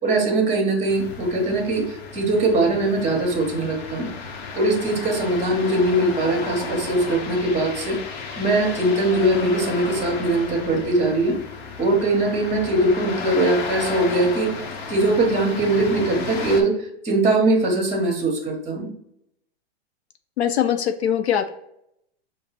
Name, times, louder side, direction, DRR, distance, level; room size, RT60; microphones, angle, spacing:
voice 1, 0.0-4.1 4.5-8.0 8.4-11.4 11.8-14.5 14.9-18.9, right 2 dB, 20° right, 2 dB, 1.3 m, -21 dB
sound 1, 0.9-16.6, left 5 dB, 45° left, 0.8 m, -33 dB
voice 2, 20.4-21.5, left 9 dB, 90° left, 7 dB, 0.6 m, -22 dB
5.2 x 2.0 x 4.2 m, 0.76 s
hypercardioid pair, 140°, 32 cm